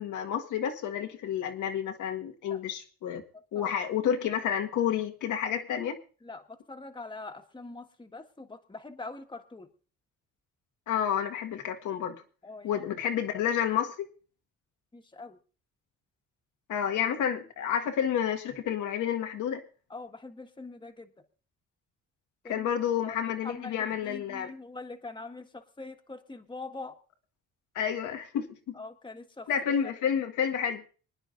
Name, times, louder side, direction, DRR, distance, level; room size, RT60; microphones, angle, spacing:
voice 1, 0.0-3.2 3.5-6.0 10.9-12.2 12.6-14.1 16.7-19.6 22.5-24.5 27.8-28.8 29.5-30.8, left 9 dB, 85° left, 3 dB, 1.7 m, -30 dB
voice 2, 3.5-3.9 6.2-9.7 12.4-12.8 14.9-15.4 19.9-21.1 22.4-22.7 23.0-23.2 23.4-26.9 28.7-29.9, left 3 dB, 15° left, 4 dB, 1.6 m, -43 dB
25.5 x 10.0 x 2.6 m, 0.38 s
cardioid pair, 90°, 30 cm